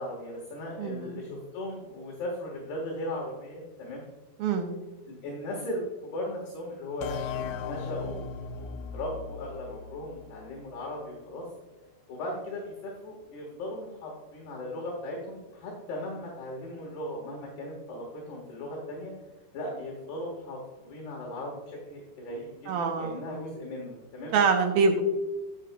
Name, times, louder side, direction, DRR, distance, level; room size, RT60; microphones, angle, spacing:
voice 1, 0.0-4.0 5.0-11.5 12.1-19.1 19.5-24.3, left 1 dB, 70° left, -2 dB, 3.3 m, -37 dB
voice 2, 0.8-1.2 4.4-4.7 22.7-23.2 24.3-25.0, right 5 dB, 80° right, 4 dB, 2.2 m, -25 dB
sound 1, 7.0-10.6, left 6 dB, 90° left, 2.1 m, -37 dB
11.5 x 8.4 x 2.2 m, 1.2 s
omnidirectional pair, 4.9 m